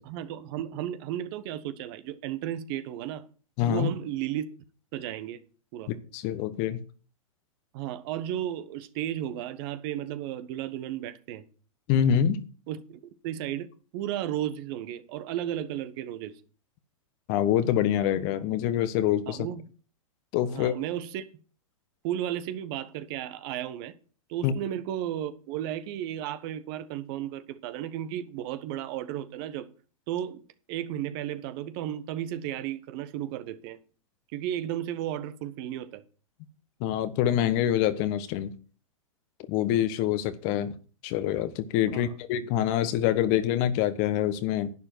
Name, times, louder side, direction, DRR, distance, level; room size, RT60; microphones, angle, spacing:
voice 1, 0.0-3.2 3.7-4.5 4.9-5.4 5.7-5.9 7.7-11.4 12.7-13.7 13.9-16.3 19.3-19.7 20.5-21.2 22.0-23.9 24.3-29.7 30.1-30.4 30.7-33.8 34.3-36.0 41.9-42.1, right 11 dB, 45° right, 1.2 m, -34 dB
voice 2, 3.6-3.9 5.9-6.8 11.9-12.4 17.3-19.5 20.3-20.8 24.4-24.5 36.8-38.5 39.5-40.7 41.0-44.7, left 10 dB, 40° left, 1.2 m, -25 dB
11.0 x 10.0 x 4.6 m
figure-of-eight pair, 105°, 18 cm